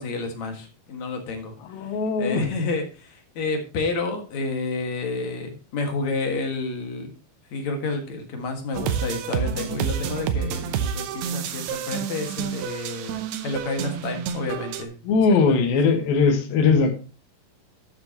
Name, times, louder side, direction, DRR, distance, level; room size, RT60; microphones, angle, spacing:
voice 1, 0.0-7.2 7.5-13.2 13.4-15.6, left 3 dB, 55° left, 4 dB, 2.7 m, -30 dB
voice 2, 1.7-2.4 15.0-17.0, left 4 dB, 70° left, 5 dB, 3.3 m, -20 dB
sound 1, 8.7-14.8, right 8 dB, 80° right, 2.9 m, -29 dB
13.0 x 8.0 x 2.9 m, 0.34 s
omnidirectional pair, 4.4 m